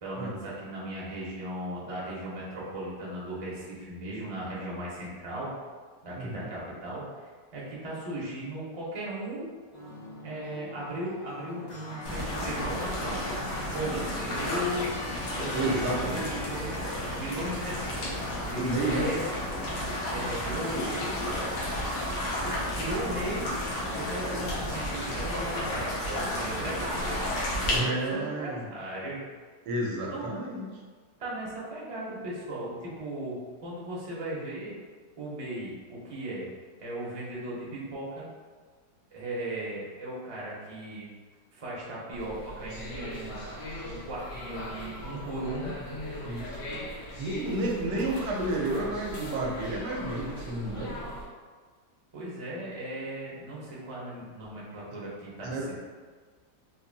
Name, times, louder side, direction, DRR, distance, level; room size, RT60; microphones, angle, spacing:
voice 1, 0.0-5.5 6.0-9.5 10.2-13.2 13.7-14.9 15.3-16.7 17.1-19.2 20.1-21.2 22.3-23.5 23.9-27.2 27.6-29.2 30.1-30.5 31.2-34.7 35.2-36.5 36.8-38.3 39.1-41.1 41.5-43.4 43.8-45.8 52.1-55.8, right 1 dB, 35° right, -6 dB, 0.6 m, -37 dB
voice 2, 6.2-6.5 15.5-16.2 18.5-19.1 27.7-28.7 29.6-30.7 43.6-43.9 46.2-46.6 47.2-50.9 55.4-55.8, right 1 dB, 75° right, -2 dB, 1.2 m, -31 dB
sound 1, 9.7-27.9, left 1 dB, 50° left, 1.0 m, -41 dB
sound 2, 12.0-27.8, left 1 dB, 90° left, 1.5 m, -32 dB
sound 3, 42.1-51.2, equal, 70° left, 1.4 m, -40 dB
4.0 x 2.6 x 2.6 m, 1.5 s
omnidirectional pair, 1.9 m